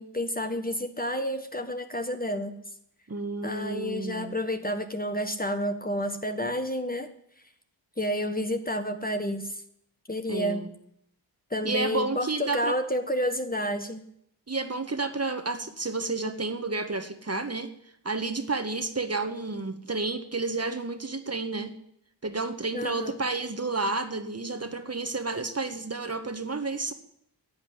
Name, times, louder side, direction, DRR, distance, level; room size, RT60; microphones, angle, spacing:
voice 1, 0.0-2.6 3.4-7.1 8.0-9.6 10.1-10.7 11.5-14.0 22.7-23.2, equal, 20° left, 7 dB, 1.5 m, -30 dB
voice 2, 3.1-4.3 10.3-10.7 11.6-12.7 14.5-17.7 18.0-21.7 22.2-26.9, right 3 dB, 30° right, 7 dB, 1.7 m, -31 dB
11.0 x 8.1 x 9.6 m, 0.72 s
supercardioid pair, 45°, 49 cm